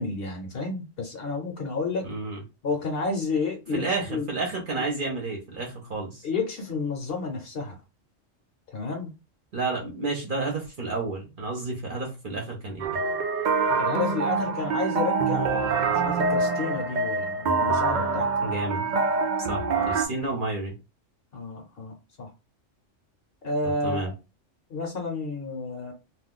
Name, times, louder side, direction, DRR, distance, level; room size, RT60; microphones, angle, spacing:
voice 1, 0.0-2.1 2.6-4.3 6.2-7.8 8.7-9.1 13.8-18.3 21.3-22.3 23.4-24.1 24.7-25.9, left 3 dB, 55° left, 0.9 m, -31 dB
voice 2, 2.0-2.4 3.7-6.3 9.5-12.9 18.4-18.9 19.4-20.7 23.8-24.1, right 3 dB, 50° right, 0.8 m, -31 dB
sound 1, 12.8-20.1, right 4 dB, 75° right, 0.4 m, -25 dB
2.4 x 2.3 x 3.6 m
omnidirectional pair, 1.3 m